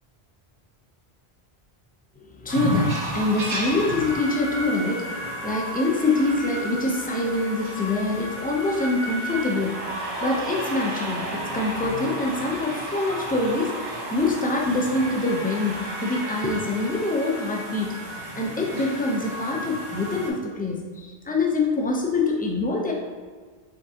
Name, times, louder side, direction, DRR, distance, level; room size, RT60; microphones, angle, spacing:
voice 1, 2.2-22.9, left 2 dB, 15° left, 0 dB, 0.4 m, -25 dB
sound 1, 2.5-20.3, right 1 dB, 50° right, 1.0 m, -32 dB
5.1 x 3.6 x 2.7 m, 1.5 s
omnidirectional pair, 1.1 m